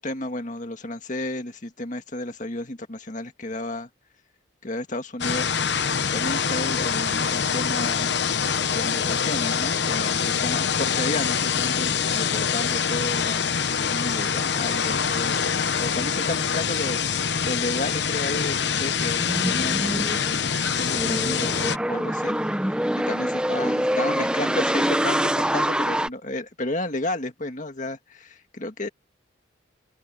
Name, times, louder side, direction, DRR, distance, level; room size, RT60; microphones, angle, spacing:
voice 1, 0.0-3.9 4.6-5.5 6.1-8.2 8.7-21.6 21.9-28.9, left 1 dB, 40° left, 2.0 m, -32 dB
sound 1, 5.2-21.8, left 6 dB, 55° left, 0.9 m, -25 dB
sound 2, 18.7-26.1, equal, 5° right, 0.9 m, -25 dB
open air
head